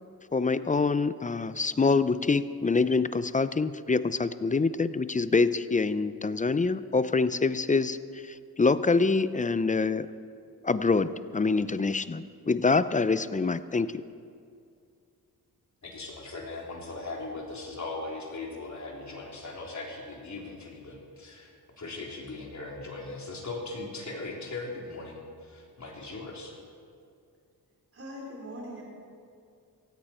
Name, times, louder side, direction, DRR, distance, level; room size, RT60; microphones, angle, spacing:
voice 1, 0.3-8.0 8.6-10.1 10.6-13.9, left 4 dB, 20° left, 14 dB, 0.5 m, -25 dB
voice 2, 15.8-26.5, left 3 dB, 50° left, -2 dB, 3.6 m, -39 dB
voice 3, 27.9-28.8, equal, 35° right, -3 dB, 4.2 m, -41 dB
16.5 x 16.0 x 4.4 m, 2.4 s
cardioid pair, 80°, 37 cm